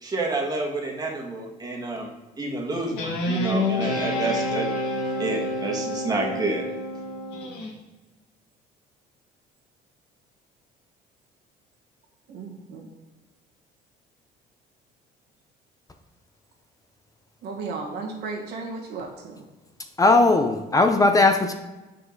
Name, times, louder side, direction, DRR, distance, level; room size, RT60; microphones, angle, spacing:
voice 1, 0.0-2.1 2.4-4.7 5.2-6.6, right 2 dB, 20° right, 0 dB, 1.7 m, -29 dB
Guitar, 3.0-7.7, left 1 dB, 85° left, 1.6 m, -28 dB
voice 2, 3.8-4.3 12.3-12.9 17.4-19.4, right 4 dB, 75° right, 0 dB, 1.7 m, -35 dB
voice 3, 20.0-21.5, left 2 dB, 20° left, 6 dB, 0.6 m, -18 dB
7.5 x 5.6 x 3.9 m, 1.1 s
cardioid pair, 110°, 17 cm